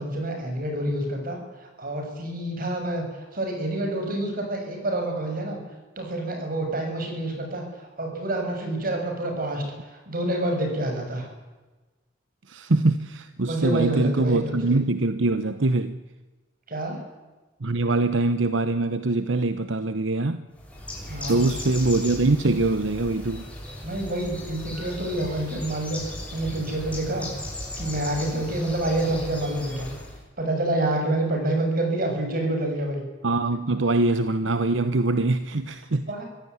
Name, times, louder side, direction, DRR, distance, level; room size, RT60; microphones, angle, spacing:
voice 1, 0.0-3.0 3.3-5.6 6.0-11.3 13.4-14.8 16.7-17.0 21.1-21.4 23.8-27.3 27.8-29.9 30.4-33.0 36.1-36.3, right 1 dB, 50° right, 7.0 m, -28 dB
voice 2, 12.5-16.0 17.6-20.4 21.3-23.5 33.2-36.1, right 2 dB, 85° right, 1.0 m, -23 dB
Bird, 20.6-30.2, left 1 dB, 5° left, 7.1 m, -37 dB
24.5 x 16.5 x 9.8 m
head